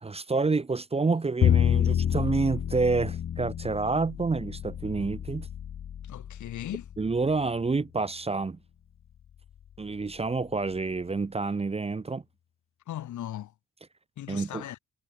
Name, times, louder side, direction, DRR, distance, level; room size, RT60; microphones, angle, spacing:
voice 1, 0.0-5.5 7.0-8.6 9.8-12.2 14.3-14.6, right 3 dB, 20° right, 0.9 m, -28 dB
Bowed string instrument, 1.4-7.6, left 9 dB, 45° left, 1.0 m, -29 dB
voice 2, 6.0-6.9 12.9-13.5 14.2-14.8, left 12 dB, 75° left, 3.0 m, -38 dB
cardioid pair, 90°, 30 cm